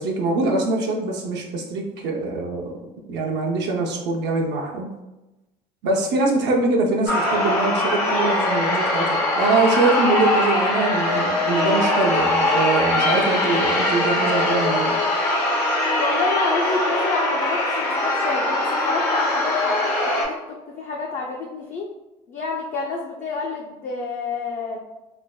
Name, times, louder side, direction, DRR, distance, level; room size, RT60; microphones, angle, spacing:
voice 1, 0.0-2.7 3.1-4.9 5.8-15.0, right 3 dB, 60° right, 0 dB, 0.5 m, -23 dB
sound 1, 7.1-20.2, left 1 dB, 90° left, 0.6 m, -21 dB
voice 2, 16.0-21.9 22.3-24.8, left 3 dB, 40° left, -2 dB, 0.5 m, -28 dB
3.2 x 2.0 x 2.2 m, 1.0 s
hypercardioid pair, 65°, 20 cm